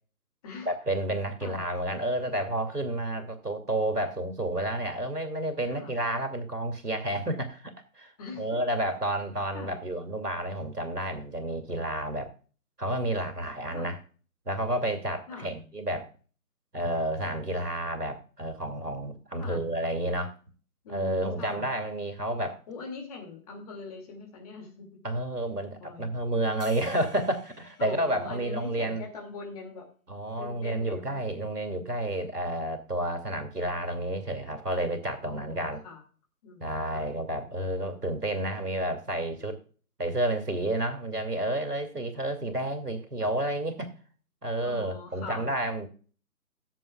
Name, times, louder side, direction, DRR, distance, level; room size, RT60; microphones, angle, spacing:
voice 1, 0.7-8.1 8.4-12.3 12.8-14.0 14.5-16.1 16.7-20.3 20.9-22.6 25.0-29.1 30.1-35.8 36.6-39.6 40.0-43.9 44.4-45.9, right 1 dB, 85° right, 5 dB, 2.5 m, -30 dB
voice 2, 8.2-8.6 9.5-9.8 13.7-13.9 15.3-15.5 19.4-19.7 20.8-21.7 22.7-24.9 25.8-26.1 27.8-29.9 30.4-31.2 35.2-36.0 36.4-37.1 44.6-45.6, left 4 dB, 25° left, 1 dB, 2.3 m, -42 dB
sound 1, 26.6-29.2, left 3 dB, 80° left, 3.3 m, -53 dB
16.5 x 7.6 x 2.3 m, 0.39 s
figure-of-eight pair, 145°, 46 cm